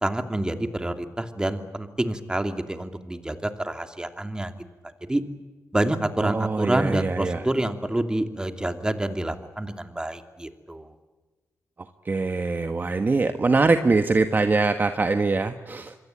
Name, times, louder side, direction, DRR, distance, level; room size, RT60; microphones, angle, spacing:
voice 1, 0.0-4.5 5.1-5.2 5.7-10.9, right 1 dB, 15° right, 7 dB, 2.8 m, -27 dB
voice 2, 6.2-7.4 12.0-15.9, right 3 dB, 35° right, 7 dB, 1.4 m, -23 dB
27.0 x 23.0 x 8.9 m, 1.2 s
cardioid pair, 80°, 6 cm